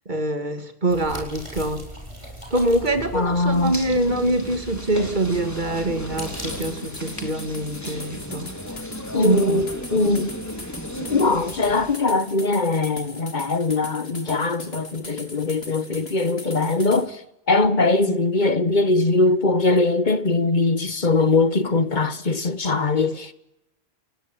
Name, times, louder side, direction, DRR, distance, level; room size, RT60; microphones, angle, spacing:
voice 1, 0.1-1.9 2.5-8.5 9.2-9.6 18.0-18.2, right 2 dB, 45° right, 2.7 m, -24 dB
sound 1, 0.9-6.7, equal, 30° right, 7.7 m, -39 dB
voice 2, 3.1-3.7 9.1-10.3 11.0-17.2 17.5-23.3, left 3 dB, 45° left, 1.5 m, -21 dB
sound 2, 3.5-12.0, equal, 15° left, 4.0 m, -35 dB
sound 3, 6.2-17.0, left 2 dB, 70° left, 3.8 m, -40 dB
29.5 x 17.5 x 9.1 m
omnidirectional pair, 1.1 m